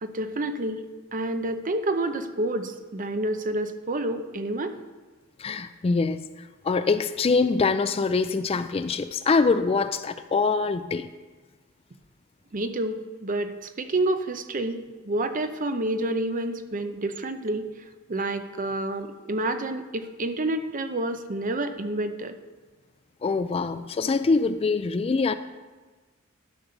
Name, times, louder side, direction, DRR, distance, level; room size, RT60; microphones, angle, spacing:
voice 1, 0.0-0.8 1.1-4.7 12.5-17.7 18.1-22.4, right 2 dB, 40° right, 0.7 m, -29 dB
voice 2, 5.4-6.2 6.6-11.1 23.2-25.3, left 4 dB, 25° left, 0.3 m, -24 dB
12.5 x 6.0 x 5.4 m
head